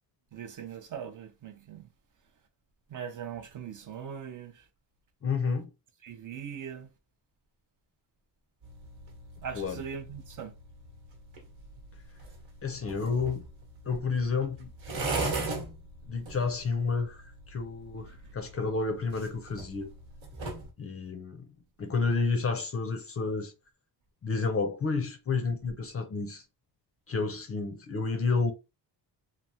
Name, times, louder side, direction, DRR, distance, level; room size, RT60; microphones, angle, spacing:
voice 1, 0.3-1.9 2.9-4.7 6.0-6.9 9.4-10.5 18.1-18.2, right 7 dB, 45° right, 0.5 m, -40 dB
voice 2, 5.2-5.7 9.5-9.8 12.6-13.4 13.9-14.7 16.1-19.9 20.8-21.5 21.8-23.5 24.2-26.4 27.1-28.5, left 4 dB, 30° left, 0.5 m, -30 dB
sound 1, 8.6-20.7, right 3 dB, 85° right, 1.2 m, -40 dB
3.2 x 2.0 x 2.7 m
cardioid pair, 120°, 45 cm